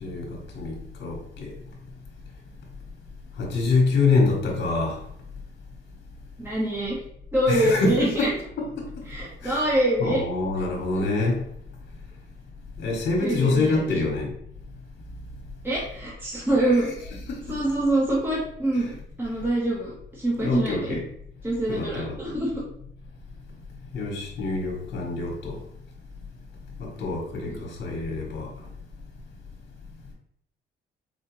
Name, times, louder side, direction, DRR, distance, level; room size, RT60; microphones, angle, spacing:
voice 1, 0.0-1.5 3.4-5.0 7.5-8.3 8.6-8.9 9.4-9.6 10.0-11.4 12.8-14.3 16.6-16.9 17.3-17.6 18.7-18.8 20.4-21.0 21.7-22.2 23.9-25.6 26.8-28.5, left 3 dB, 60° left, 1.2 m, -26 dB
voice 2, 6.4-6.9 7.3-8.3 9.1-10.2 10.9-11.0 13.2-14.1 15.6-16.9 17.5-21.0 21.4-22.6 27.5-27.6, right 1 dB, 10° right, 1.0 m, -25 dB
4.3 x 2.4 x 3.0 m
cardioid pair, 90°, 20 cm